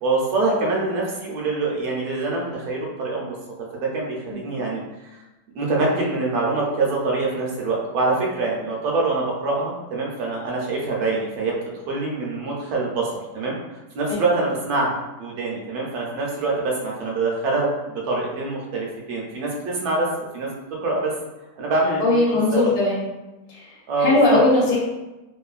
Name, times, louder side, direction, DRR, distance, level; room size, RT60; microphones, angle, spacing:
voice 1, 0.0-3.3 3.7-4.8 5.5-11.5 11.9-13.5 13.9-17.7 18.1-20.1 20.3-20.5 20.8-21.1 21.6-22.7 23.9-24.4, right 3 dB, 70° right, -3 dB, 1.1 m, -24 dB
voice 2, 22.0-23.1 24.0-24.8, left 2 dB, 80° left, -4 dB, 1.2 m, -18 dB
3.0 x 2.1 x 2.4 m, 1.0 s
omnidirectional pair, 1.8 m